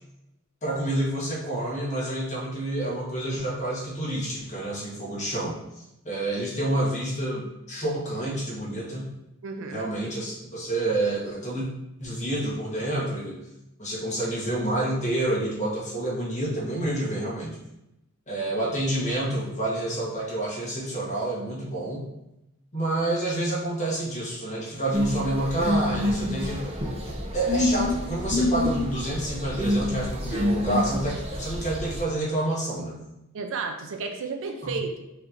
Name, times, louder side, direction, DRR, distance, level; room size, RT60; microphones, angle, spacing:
voice 1, 0.6-5.5 6.0-9.1 9.7-11.7 12.0-13.4 13.8-17.6 18.3-22.1 22.7-26.7 27.3-33.0 34.6-34.8, right 1 dB, 35° left, -5 dB, 1.2 m, -28 dB
voice 2, 9.4-9.9 33.3-35.1, right 4 dB, 65° right, 4 dB, 0.5 m, -32 dB
sound 1, 24.9-32.0, left 1 dB, 30° right, 0.6 m, -27 dB
4.8 x 2.8 x 2.6 m, 0.89 s
head